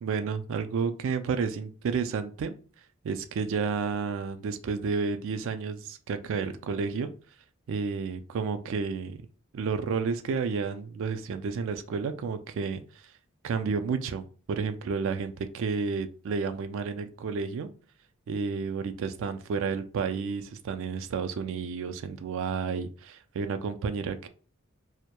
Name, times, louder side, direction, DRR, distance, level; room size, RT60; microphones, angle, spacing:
voice 1, 0.0-2.6 3.0-7.1 7.7-9.2 9.5-12.8 13.4-17.7 18.3-24.3, right 5 dB, 60° right, 9 dB, 0.3 m, -31 dB
2.2 x 2.1 x 2.9 m, 0.39 s
head